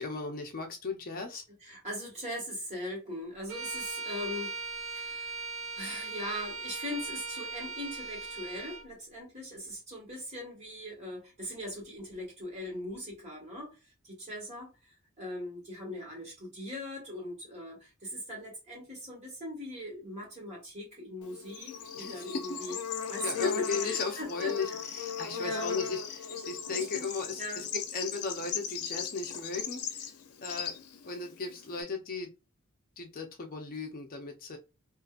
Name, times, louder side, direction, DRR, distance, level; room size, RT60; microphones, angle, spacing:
voice 1, 0.0-1.4 21.9-22.6 23.2-30.0 30.4-30.8 31.0-32.3 33.0-34.6, left 4 dB, 40° left, 0.5 m, -36 dB
voice 2, 1.6-4.6 4.9-5.3 5.7-13.7 14.0-14.7 15.2-22.8 23.1-24.8 25.3-25.7 26.7-27.1 27.4-27.6, left 1 dB, 30° right, 1.5 m, -40 dB
Bowed string instrument, 3.5-8.9, right 3 dB, 60° right, 0.7 m, -39 dB
Bird / Insect, 21.2-31.8, left 7 dB, 90° left, 0.5 m, -37 dB
2.7 x 2.5 x 2.3 m
head